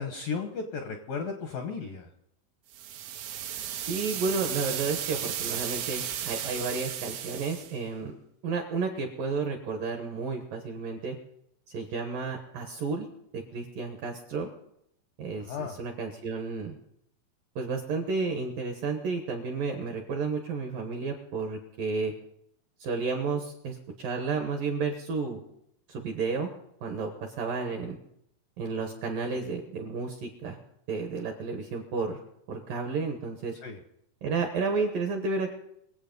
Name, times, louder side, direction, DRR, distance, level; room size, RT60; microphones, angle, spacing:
voice 1, 0.0-2.1 15.3-15.8 33.6-33.8, left 5 dB, 75° left, 4 dB, 2.1 m, -35 dB
sound 1, 2.7-7.8, right 10 dB, 90° right, 3.9 m, -34 dB
voice 2, 3.8-8.2 8.4-11.2 11.7-13.1 13.3-14.5 15.2-16.8 17.6-22.1 22.8-25.4 25.9-26.5 26.8-28.0 28.6-30.6 30.9-32.2 32.5-33.5 34.2-35.5, right 4 dB, 70° right, 4 dB, 2.2 m, -32 dB
24.0 x 8.3 x 5.4 m, 0.76 s
omnidirectional pair, 5.6 m